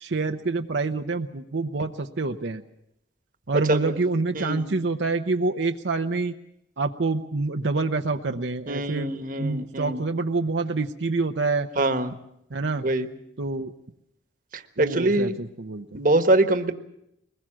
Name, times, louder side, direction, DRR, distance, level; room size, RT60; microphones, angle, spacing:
voice 1, 0.0-2.6 3.5-6.3 6.8-9.1 9.4-11.7 12.5-12.9 13.4-13.7 14.8-16.0, right 3 dB, 80° right, 5 dB, 0.9 m, -27 dB
voice 2, 3.5-3.9 4.3-4.7 8.7-10.0 11.8-12.1 12.8-13.1 14.5-15.3 15.9-16.7, right 2 dB, 50° right, 9 dB, 1.4 m, -23 dB
22.5 x 20.5 x 7.6 m, 0.78 s
head